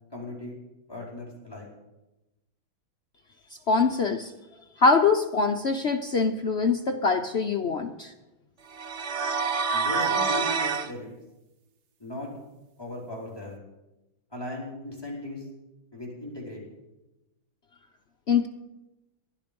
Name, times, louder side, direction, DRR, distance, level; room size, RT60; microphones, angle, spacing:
voice 1, 0.1-0.6 0.9-1.7 9.7-11.1 12.0-12.3 12.8-13.6 14.3-15.5 15.9-16.7, left 1 dB, 10° left, -3 dB, 4.6 m, -37 dB
voice 2, 3.7-4.3 4.8-8.1 18.3-18.5, left 4 dB, 75° left, 5 dB, 0.6 m, -23 dB
sound 1, 8.7-10.9, right 5 dB, 50° right, 0.8 m, -26 dB
19.5 x 12.0 x 5.3 m, 1.0 s
omnidirectional pair, 2.2 m